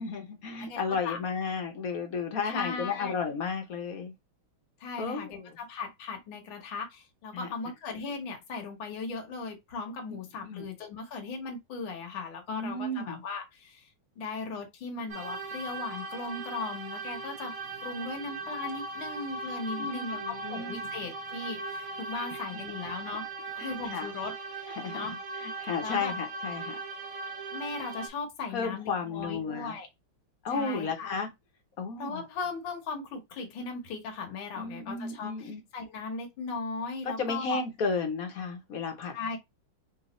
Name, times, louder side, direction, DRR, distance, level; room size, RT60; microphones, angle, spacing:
voice 1, 0.0-4.1 5.0-5.6 7.3-7.5 10.5-10.6 12.5-13.2 19.8-20.8 22.5-22.6 23.6-24.1 24.7-26.8 28.5-29.8 30.4-31.3 31.8-32.2 34.6-35.6 37.2-39.1, left 4 dB, 55° left, 1.2 m, -33 dB
voice 2, 0.6-1.2 2.4-3.2 4.8-13.9 14.2-17.6 17.8-23.3 23.6-25.2 25.8-26.1 27.5-29.9 30.5-31.1 32.0-37.6 39.1-39.4, left 4 dB, 70° left, 1.8 m, -38 dB
sound 1, 15.1-28.1, right 3 dB, 55° right, 1.0 m, -38 dB
3.9 x 2.4 x 4.0 m
omnidirectional pair, 2.3 m